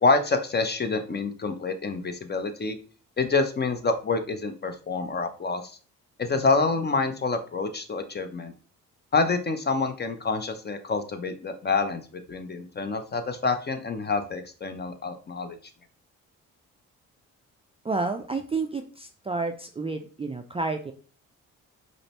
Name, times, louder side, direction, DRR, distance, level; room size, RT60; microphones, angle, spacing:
voice 1, 0.0-2.8 3.2-5.6 6.2-8.5 9.1-15.6, left 4 dB, 30° left, 8 dB, 0.6 m, -27 dB
voice 2, 17.8-20.9, right 3 dB, 15° right, 5 dB, 0.4 m, -30 dB
5.0 x 2.1 x 2.9 m, 0.38 s
supercardioid pair, 50°, 36 cm